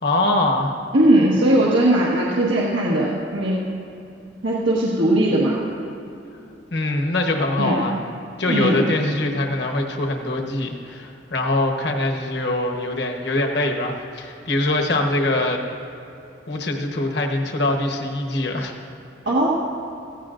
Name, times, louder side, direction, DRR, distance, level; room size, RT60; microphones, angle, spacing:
voice 1, 0.0-0.7 6.7-8.0 8.4-15.6 16.5-18.7, left 2 dB, 60° left, 2 dB, 1.2 m, -23 dB
voice 2, 0.9-3.6 4.4-5.6 7.6-7.8 8.5-8.8 19.2-19.5, right 1 dB, 85° right, -6 dB, 1.5 m, -19 dB
16.5 x 15.5 x 2.6 m, 2.9 s
head